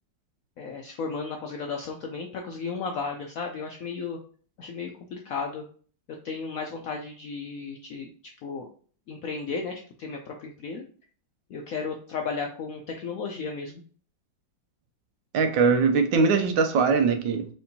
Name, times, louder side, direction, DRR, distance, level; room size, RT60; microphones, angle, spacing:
voice 1, 0.6-4.2 4.6-5.7 6.2-8.1 8.4-8.7 9.1-10.8 11.5-13.8, left 5 dB, 75° left, 2 dB, 0.8 m, -34 dB
voice 2, 15.3-17.5, right 5 dB, 80° right, 7 dB, 1.4 m, -21 dB
4.4 x 3.6 x 2.7 m, 0.44 s
omnidirectional pair, 2.0 m